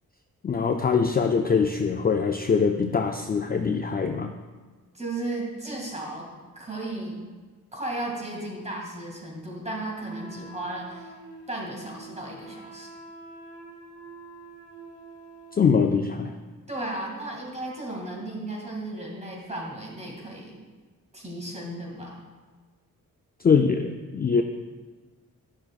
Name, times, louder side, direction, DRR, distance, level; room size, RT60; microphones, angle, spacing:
voice 1, 0.4-4.3 15.5-16.3 23.4-24.4, left 5 dB, 30° left, 5 dB, 0.4 m, -23 dB
voice 2, 4.9-6.3 6.6-7.2 7.7-11.1 11.5-12.9 16.7-20.6 21.1-22.2, right 2 dB, 20° right, -2 dB, 2.1 m, -35 dB
Wind instrument woodwind instrument, 10.0-15.9, right 2 dB, 45° left, 1.1 m, -46 dB
10.0 x 5.9 x 2.4 m, 1.4 s
cardioid pair, 65°, 34 cm